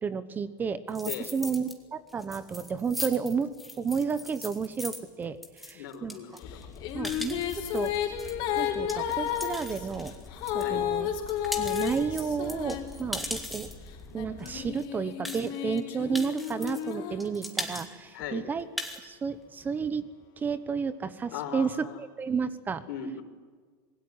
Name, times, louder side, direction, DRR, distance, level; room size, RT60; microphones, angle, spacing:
voice 1, 0.0-3.5 3.8-6.2 6.9-7.9 8.6-10.1 10.5-11.1 11.6-13.7 14.1-18.6 19.0-20.1 20.4-22.8, right 5 dB, 15° right, 14 dB, 1.0 m, -32 dB
sound 1, 0.9-1.7 2.1-10.7 11.1-13.9 14.5-14.6 14.8-14.9 15.2-15.8 16.1-16.9 17.2-17.9 18.2-18.3 18.6-19.0, left 1 dB, ahead, 2.6 m, -39 dB
voice 2, 5.7-6.7 10.6-10.9 18.1-18.4 21.3-22.0 22.9-23.2, left 9 dB, 70° left, 7 dB, 4.3 m, -38 dB
sound 2, 6.4-14.7, left 4 dB, 30° left, 3.0 m, -47 dB
Female singing, 6.5-13.4 14.1-17.9, left 10 dB, 45° left, 4.2 m, -33 dB
26.5 x 21.5 x 9.7 m, 1.5 s
supercardioid pair, 155°, 11 cm